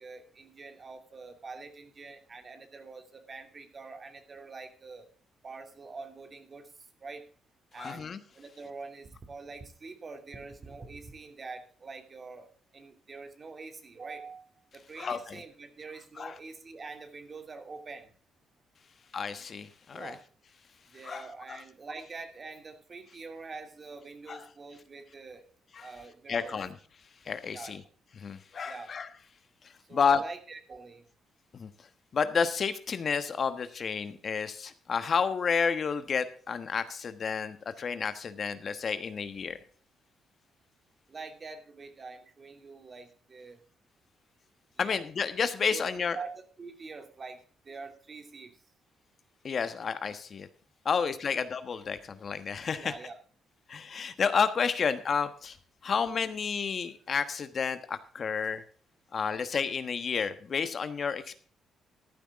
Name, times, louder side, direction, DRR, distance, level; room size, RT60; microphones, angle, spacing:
voice 1, 0.0-5.1 5.4-6.7 7.0-7.2 7.7-8.1 8.3-12.5 12.7-14.4 14.7-18.1 19.9-20.2 20.9-25.5 25.8-26.6 27.5-27.8 28.6-28.9 29.9-31.0 41.1-43.6 44.8-45.0 45.7-46.3 46.6-48.6 52.8-53.2, right 4 dB, 35° right, 6 dB, 2.6 m, -45 dB
voice 2, 7.8-8.2 15.0-15.4 16.2-16.4 19.1-20.2 21.1-21.6 24.3-24.4 25.8-25.9 26.3-26.7 27.3-27.8 28.2-29.1 29.9-30.2 31.5-31.7 32.1-39.6 44.8-46.2 49.4-50.5 50.8-52.9 53.7-55.6 55.8-58.6 59.1-61.4, left 6 dB, 45° left, 11 dB, 1.2 m, -30 dB
14.0 x 11.5 x 3.6 m, 0.42 s
cardioid pair, 90°, 0 cm